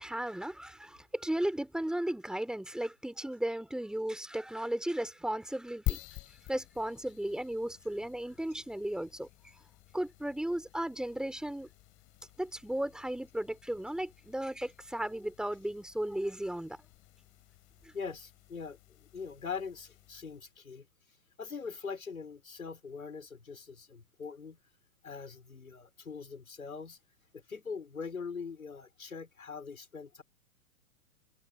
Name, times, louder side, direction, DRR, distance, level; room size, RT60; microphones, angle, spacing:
voice 1, 0.0-6.0 6.5-9.3 9.9-11.7 12.4-16.8 17.8-17.9, right 1 dB, ahead, 3.8 m, -35 dB
sound 1, 5.9-20.6, left 19 dB, 30° left, 4.1 m, -47 dB
voice 2, 17.9-20.9 21.4-24.6 25.0-27.0 27.3-30.2, left 5 dB, 75° left, 5.4 m, -42 dB
figure-of-eight pair, 105°, 42 cm